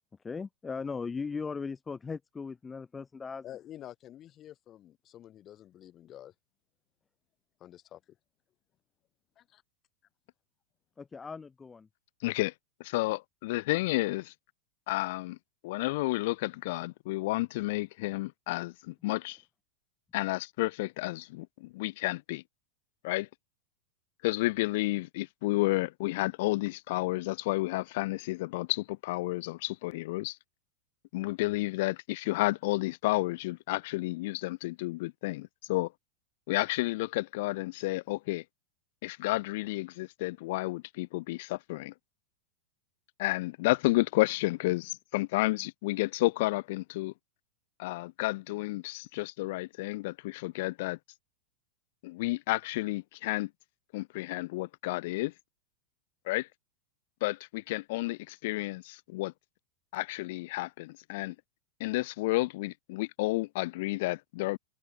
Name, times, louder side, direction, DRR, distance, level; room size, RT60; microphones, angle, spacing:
voice 1, 0.2-3.5 11.0-11.9, left 5 dB, 15° left, 5.2 m, -38 dB
voice 2, 3.4-6.3 7.6-8.0 9.4-9.6, left 12 dB, 30° left, 4.5 m, -49 dB
voice 3, 12.2-12.5 12.8-14.3 14.9-15.4 15.6-19.4 20.1-22.4 23.0-23.3 24.2-30.4 31.1-35.9 36.5-38.4 39.0-41.9 43.2-47.1 47.8-51.0 52.0-53.5 53.9-55.3 56.2-56.5 57.2-59.3 59.9-61.3 61.8-64.6, left 20 dB, 50° left, 1.3 m, -31 dB
figure-of-eight pair, 90°, 0 cm